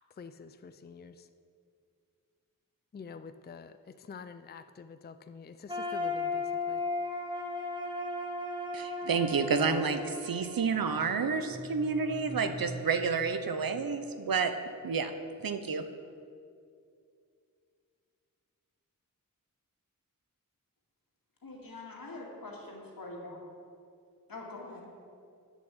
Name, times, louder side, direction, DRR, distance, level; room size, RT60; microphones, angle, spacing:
voice 1, 0.2-1.3 2.9-6.8, left 5 dB, 30° left, 11 dB, 0.4 m, -47 dB
sound 1, 5.7-11.6, left 3 dB, 15° right, 1.2 m, -36 dB
voice 2, 8.7-14.5 14.8-15.1 15.4-15.9, right 5 dB, 85° right, 9 dB, 0.8 m, -30 dB
sound 2, 10.6-14.3, right 2 dB, 60° left, 1.6 m, -46 dB
voice 3, 21.4-23.4 24.3-24.9, left 2 dB, 80° left, -1 dB, 2.0 m, -44 dB
8.4 x 7.1 x 7.9 m, 2.4 s
wide cardioid pair, 85°, 34 cm